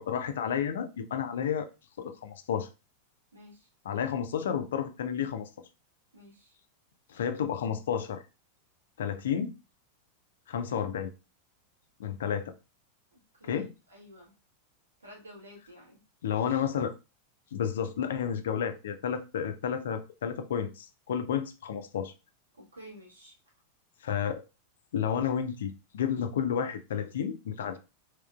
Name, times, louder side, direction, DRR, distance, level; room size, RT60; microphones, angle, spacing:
voice 1, 0.0-1.7 2.0-2.7 3.9-5.5 7.1-8.2 9.0-9.5 10.5-11.1 12.0-12.5 13.4-13.7 16.2-16.9 17.5-22.1 24.0-24.4 24.9-27.8, left 8 dB, 60° left, 0.4 m, -31 dB
voice 2, 3.3-3.7 6.1-6.5 13.1-14.3 15.0-16.0 22.5-23.4, equal, 75° right, 1.3 m, -51 dB
3.6 x 2.8 x 2.2 m
figure-of-eight pair, 90°, 0 cm